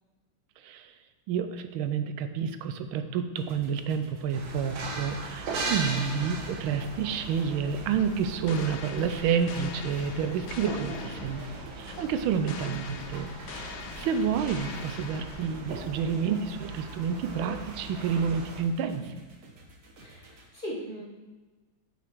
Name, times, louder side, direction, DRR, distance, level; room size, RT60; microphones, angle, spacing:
voice 1, 1.3-11.4 11.8-19.0, right 7 dB, 85° right, 9 dB, 1.4 m, -29 dB
sound 1, 3.4-20.5, right 2 dB, 50° right, 1.1 m, -53 dB
sound 2, 4.3-18.6, right 3 dB, 70° right, 1.7 m, -39 dB
voice 2, 5.6-6.0 10.7-11.2 18.9-19.1 20.0-21.0, equal, 30° left, -6 dB, 1.0 m, -40 dB
sound 3, 8.0-15.9, left 7 dB, 75° left, 0.9 m, -43 dB
6.8 x 5.8 x 4.6 m, 1.3 s
omnidirectional pair, 2.2 m